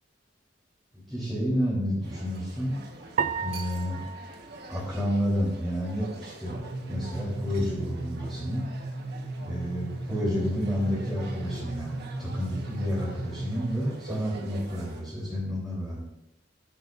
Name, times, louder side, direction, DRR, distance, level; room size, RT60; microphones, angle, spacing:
voice 1, 1.1-2.8 3.4-4.0 4.7-8.6 9.4-16.0, equal, ahead, -9 dB, 4.0 m, -30 dB
sound 1, 2.0-15.0, right 2 dB, 60° right, 1.6 m, -46 dB
sound 2, 3.2-5.6, right 6 dB, 45° right, 0.5 m, -34 dB
sound 3, 6.5-14.1, right 2 dB, 85° left, 2.2 m, -36 dB
16.0 x 11.0 x 2.7 m, 0.89 s
head